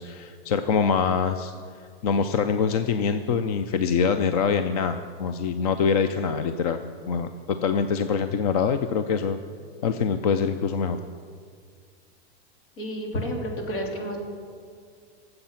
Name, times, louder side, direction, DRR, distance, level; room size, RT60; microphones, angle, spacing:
voice 1, 0.0-1.5 2.0-6.8 7.1-9.4 9.8-11.0, left 6 dB, 35° left, 9 dB, 0.4 m, -24 dB
voice 2, 12.8-14.2, equal, 60° left, 1 dB, 3.1 m, -30 dB
20.0 x 7.9 x 5.7 m, 2.1 s
supercardioid pair, 170°, 32 cm